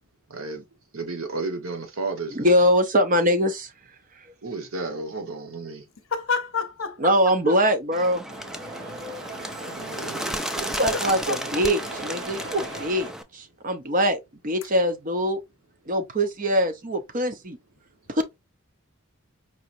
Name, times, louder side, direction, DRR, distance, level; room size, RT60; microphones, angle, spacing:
voice 1, 0.3-0.6 0.9-2.5 4.4-5.8 9.7-10.7, right 3 dB, 85° right, 1.2 m, -33 dB
voice 2, 2.3-3.7 7.0-8.2 10.6-14.2 14.4-15.4 15.9-17.6 18.1-18.2, equal, 40° right, 0.7 m, -23 dB
voice 3, 6.1-7.6 10.8-11.7, left 5 dB, 70° left, 0.7 m, -30 dB
Bird, 7.9-13.2, equal, ahead, 0.3 m, -33 dB
sound 1, 8.3-13.1, right 3 dB, 60° right, 1.1 m, -39 dB
4.8 x 2.9 x 2.6 m
head